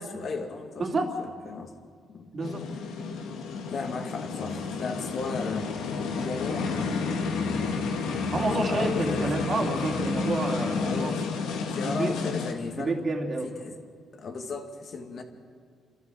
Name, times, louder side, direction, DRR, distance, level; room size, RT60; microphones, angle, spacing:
voice 1, 0.0-1.7 2.1-2.3 3.7-5.7 6.2-8.0 8.6-9.3 10.8-11.3 11.7-13.0 13.4-13.8 14.1-15.2, left 4 dB, 55° left, 5 dB, 2.3 m, -36 dB
voice 2, 0.8-1.1 2.3-2.6 8.3-11.1 11.6-12.2 12.8-13.5, right 2 dB, 40° right, 2 dB, 3.0 m, -29 dB
sound 1, 2.4-12.5, left 4 dB, 90° left, 2.0 m, -30 dB
28.5 x 13.0 x 7.7 m, 2.1 s
cardioid pair, 90°, 0 cm